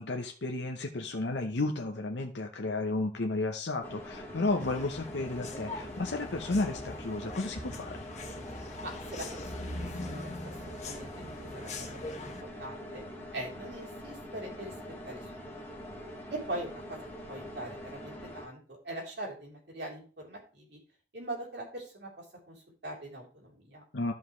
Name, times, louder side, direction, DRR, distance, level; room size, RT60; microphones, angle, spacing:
voice 1, 0.0-8.0 23.9-24.1, left 2 dB, 85° left, 4 dB, 0.9 m, -33 dB
sound 1, 3.8-18.5, equal, 10° left, 1.8 m, -44 dB
sound 2, 4.6-12.4, left 2 dB, 40° left, 1.5 m, -42 dB
voice 2, 8.8-9.7 10.0-10.3 10.7-11.1 11.4-13.0 13.3-14.7 15.1-15.6 16.3-17.0 17.3-20.8 21.1-23.8, right 1 dB, 70° right, -1 dB, 3.4 m, -42 dB
14.0 x 5.3 x 3.1 m, 0.38 s
head